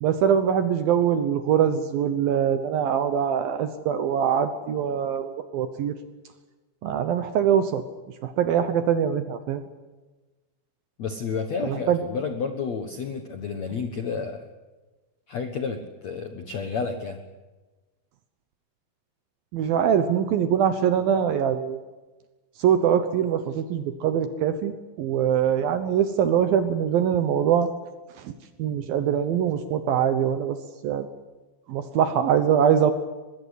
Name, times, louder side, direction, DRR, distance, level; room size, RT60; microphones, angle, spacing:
voice 1, 0.0-6.0 6.8-7.8 8.2-9.6 11.6-12.0 19.5-21.8 22.6-24.7 25.0-27.7 28.2-28.3 28.6-30.6 30.8-31.1 31.7-32.9, right 8 dB, 70° right, 10 dB, 2.4 m, -23 dB
voice 2, 11.0-14.5 15.3-17.2, left 5 dB, 70° left, 6 dB, 1.6 m, -31 dB
23.5 x 20.5 x 8.2 m, 1.2 s
omnidirectional pair, 5.2 m